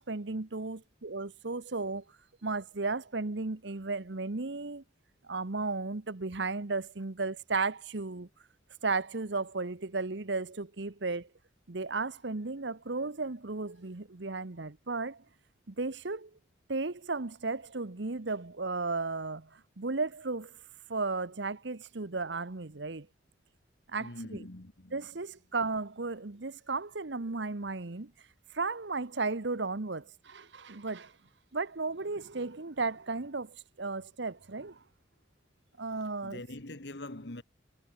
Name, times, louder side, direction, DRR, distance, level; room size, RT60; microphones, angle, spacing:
voice 1, 0.0-2.0 2.4-4.8 5.2-8.3 8.8-11.3 11.7-15.2 15.7-16.3 16.7-20.5 20.9-23.1 23.9-24.4 24.9-28.1 28.5-31.1 31.5-34.8 35.8-36.4, right 3 dB, 65° right, 1.1 m, -34 dB
voice 2, 24.0-25.1 36.2-37.4, left 1 dB, 60° left, 1.8 m, -43 dB
head